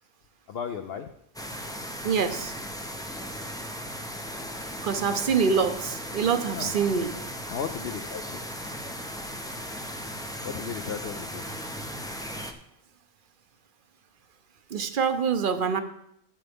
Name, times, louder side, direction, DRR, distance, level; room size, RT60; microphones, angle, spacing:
voice 1, 0.5-1.1 6.5-6.7 7.5-8.2 10.4-11.4, left 7 dB, 60° left, 5 dB, 0.7 m, -34 dB
sound 1, 1.3-12.5, equal, 5° left, 0.5 m, -37 dB
voice 2, 2.0-2.5 4.8-7.1 14.7-15.8, right 6 dB, 50° right, 9 dB, 0.8 m, -25 dB
13.0 x 7.9 x 3.5 m, 0.77 s
omnidirectional pair, 1.3 m